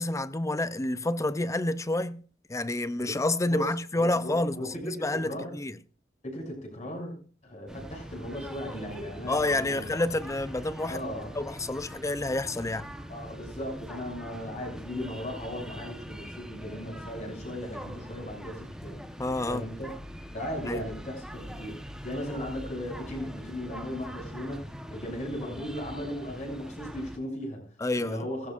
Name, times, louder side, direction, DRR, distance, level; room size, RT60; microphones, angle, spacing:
voice 1, 0.0-2.2 2.5-5.8 9.3-11.0 11.4-12.9 19.2-19.6 20.7-20.8 27.8-28.2, left 2 dB, 15° left, 0.5 m, -29 dB
voice 2, 3.5-5.6 6.2-9.8 10.9-11.4 13.1-19.0 19.5-19.9 20.3-21.8 22.0-28.5, equal, 40° left, 6.7 m, -37 dB
sound 1, 7.7-27.2, equal, 5° right, 1.0 m, -42 dB
17.5 x 15.0 x 2.5 m
head